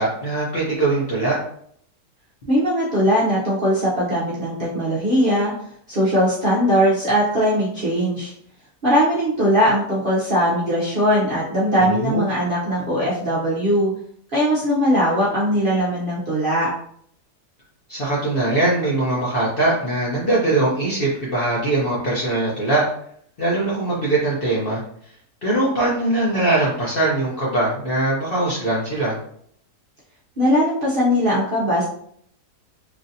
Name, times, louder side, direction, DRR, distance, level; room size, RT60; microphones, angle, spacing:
voice 1, 0.0-1.4 11.8-12.2 17.9-22.9 23.4-24.8 25.4-29.2, right 2 dB, 50° left, -6 dB, 0.7 m, -21 dB
voice 2, 2.5-5.5 5.9-8.3 8.8-13.9 14.3-16.7 30.4-31.8, equal, 50° right, -8 dB, 0.7 m, -20 dB
3.1 x 2.6 x 2.6 m, 0.65 s
omnidirectional pair, 1.7 m